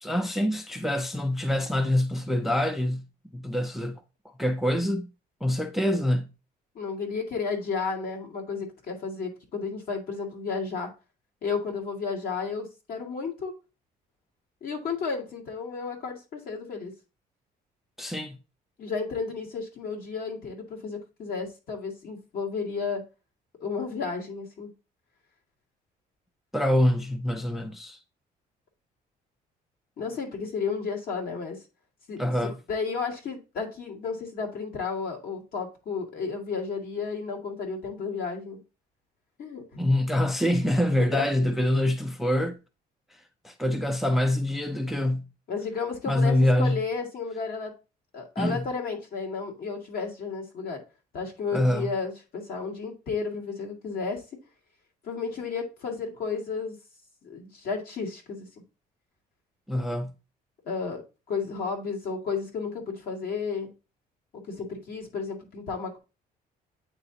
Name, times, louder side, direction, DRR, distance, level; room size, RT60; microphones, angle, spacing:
voice 1, 0.0-3.1 3.3-4.0 4.4-5.1 5.4-6.3 18.0-18.3 26.5-28.0 32.2-32.6 39.8-42.6 43.4-45.3 46.1-46.8 48.4-48.6 51.5-51.9 59.7-60.1, left 1 dB, ahead, 0.5 m, -25 dB
voice 2, 6.7-10.9 11.4-13.5 14.6-16.9 18.8-23.0 23.6-24.7 30.0-31.6 32.1-38.6 39.4-39.8 40.6-41.3 45.5-47.7 48.1-50.8 51.1-54.2 55.0-56.8 57.2-58.5 60.7-61.0 61.3-63.7 64.3-66.0, left 5 dB, 60° left, 2.0 m, -32 dB
8.8 x 3.9 x 2.8 m
cardioid pair, 110°, 17 cm